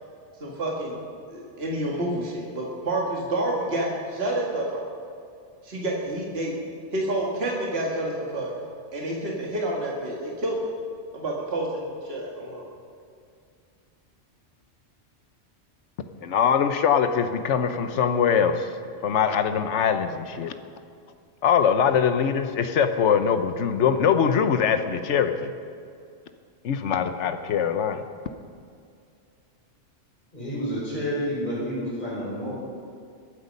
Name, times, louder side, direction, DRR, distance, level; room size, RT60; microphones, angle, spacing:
voice 1, 0.4-1.0 1.3-4.9 5.6-6.5 6.9-8.5 8.9-10.7 11.1-12.7, right 1 dB, 60° right, -3 dB, 2.2 m, -29 dB
voice 2, 16.2-18.7 19.0-20.5 21.4-25.5 26.6-28.0, left 7 dB, 80° left, 9 dB, 1.1 m, -22 dB
voice 3, 30.3-32.5, equal, 45° left, -6 dB, 4.9 m, -29 dB
22.0 x 8.2 x 5.3 m, 2.3 s
omnidirectional pair, 1.2 m